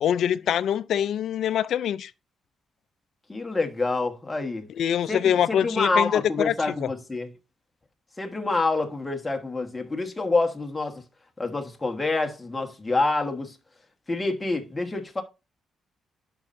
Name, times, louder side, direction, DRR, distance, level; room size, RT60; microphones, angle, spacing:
voice 1, 0.0-2.1 4.8-6.9, left 9 dB, 70° left, 0.4 m, -24 dB
voice 2, 3.3-4.7 5.1-7.3 8.2-11.0 11.4-13.6 14.1-15.2, left 3 dB, 15° left, 1.3 m, -27 dB
10.5 x 5.5 x 2.6 m
cardioid pair, 120°, 0 cm